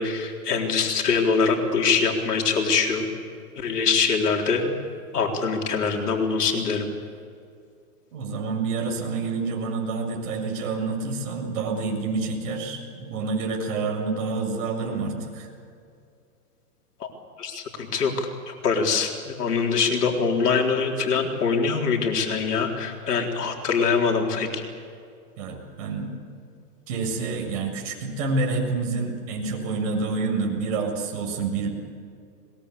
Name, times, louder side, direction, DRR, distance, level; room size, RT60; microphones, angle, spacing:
voice 1, 0.0-3.1 3.6-4.8 5.1-6.9 17.0-17.1 17.4-24.6, left 5 dB, 90° left, 2 dB, 4.2 m, -23 dB
voice 2, 8.1-15.5 25.4-26.1 26.9-31.7, right 4 dB, 55° right, 1 dB, 7.3 m, -28 dB
22.0 x 21.5 x 8.5 m, 2.4 s
hypercardioid pair, 140°, 45 cm